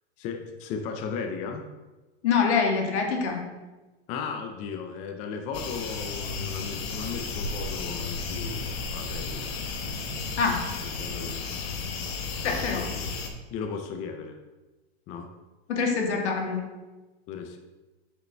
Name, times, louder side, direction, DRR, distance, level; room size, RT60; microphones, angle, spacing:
voice 1, 0.2-1.7 4.1-9.5 9.9-10.2 10.8-11.5 12.4-13.1 13.5-14.4 15.1-15.3 17.3-17.6, left 5 dB, 25° left, 5 dB, 0.4 m, -36 dB
voice 2, 2.2-3.4 10.4-10.6 12.4-12.9 15.7-16.6, left 5 dB, 85° left, 1 dB, 1.7 m, -25 dB
sound 1, 5.5-13.3, left 4 dB, 65° left, 1.1 m, -33 dB
7.6 x 5.1 x 3.3 m, 1.2 s
supercardioid pair, 155°, 33 cm